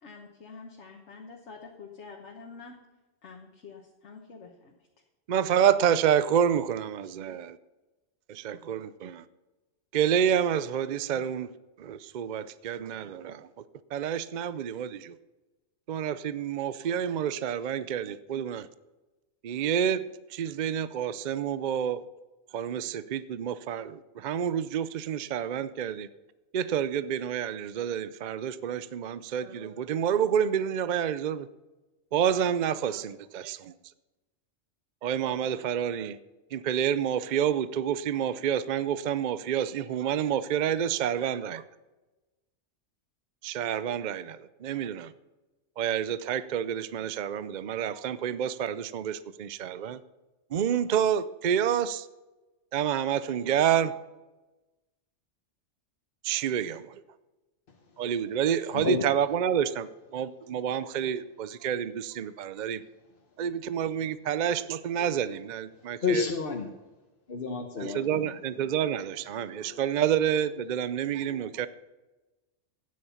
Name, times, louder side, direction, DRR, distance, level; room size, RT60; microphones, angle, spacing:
voice 1, 0.0-2.8 3.2-4.7, left 4 dB, 70° left, 1 dB, 1.5 m, -47 dB
voice 2, 5.3-7.6 8.3-9.2 9.9-11.5 11.8-13.5 13.9-15.1 15.9-18.7 19.4-22.0 22.5-26.1 26.5-31.5 32.1-33.7 35.0-36.2 36.5-41.6 43.4-45.1 45.8-50.0 50.5-52.1 52.7-54.0 56.2-57.0 58.0-62.8 63.4-66.3 67.8-71.7, right 9 dB, 55° right, 14 dB, 0.5 m, -28 dB
voice 3, 58.7-59.0 62.5-62.7 65.7-66.7 67.3-68.3 69.4-69.8 71.1-71.7, left 6 dB, 50° left, 1 dB, 1.2 m, -32 dB
12.5 x 9.5 x 5.7 m, 1.1 s
omnidirectional pair, 1.2 m